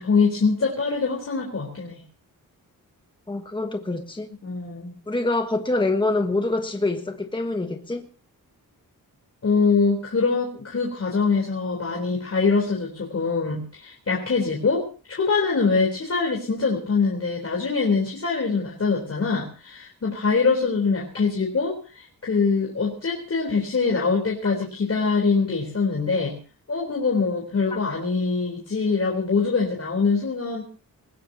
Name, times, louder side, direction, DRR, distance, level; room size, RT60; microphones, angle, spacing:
voice 1, 0.0-2.0 4.4-5.0 9.4-26.4 26.7-30.6, left 4 dB, 45° left, 4.0 m, -23 dB
voice 2, 3.3-4.3 5.1-8.0 24.4-24.5 27.7-27.8, left 2 dB, 15° left, 1.4 m, -25 dB
21.5 x 20.0 x 2.9 m
wide cardioid pair, 160°, 36 cm